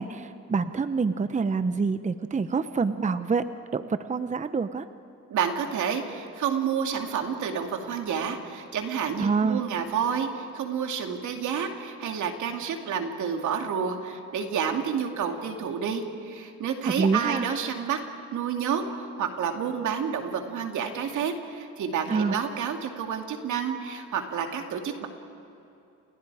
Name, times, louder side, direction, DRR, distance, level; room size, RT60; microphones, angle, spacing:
voice 1, 0.0-3.4 3.7-4.8 9.2-9.6 16.8-17.5 22.1-22.4, right 4 dB, 25° right, 11 dB, 0.8 m, -26 dB
voice 2, 5.3-18.0 18.3-25.1, right 7 dB, 75° right, 4 dB, 2.7 m, -29 dB
30.0 x 29.5 x 4.9 m, 2.7 s
cardioid pair, 90°, 30 cm